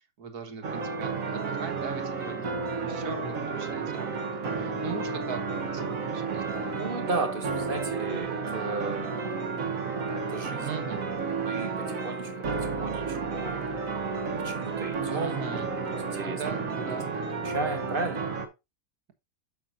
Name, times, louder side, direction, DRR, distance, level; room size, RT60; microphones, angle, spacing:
voice 1, 0.2-4.3 4.6-5.4 5.7-6.7 10.6-11.0 15.1-15.7 16.2-17.1, right 6 dB, 90° right, 1.9 m, -40 dB
sound 1, 0.6-18.5, right 4 dB, 65° right, 1.8 m, -32 dB
voice 2, 6.8-9.1 10.1-10.7 11.4-13.6 14.4-15.4 15.7-16.4 16.7-16.9 17.2-18.3, right 3 dB, 35° right, 1.8 m, -35 dB
8.7 x 6.8 x 2.6 m
omnidirectional pair, 1.6 m